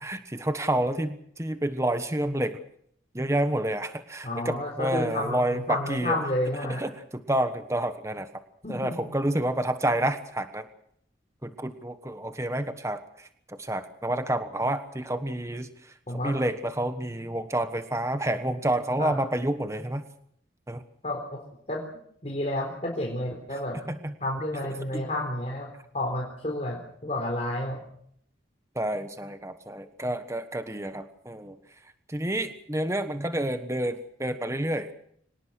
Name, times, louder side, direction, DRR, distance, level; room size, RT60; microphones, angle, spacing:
voice 1, 0.0-2.6 3.1-6.2 6.8-8.3 8.7-10.7 11.4-15.7 16.2-20.0 20.7-20.8 23.9-24.1 24.9-25.0 28.7-31.6 32.1-34.9, right 1 dB, 15° right, 9 dB, 1.2 m, -29 dB
voice 2, 4.2-6.9 8.6-9.1 16.1-16.4 19.0-19.2 21.0-21.4 21.7-21.8 22.2-23.8 24.2-27.9, left 1 dB, 35° left, 0 dB, 3.9 m, -31 dB
25.0 x 19.5 x 6.5 m, 0.68 s
head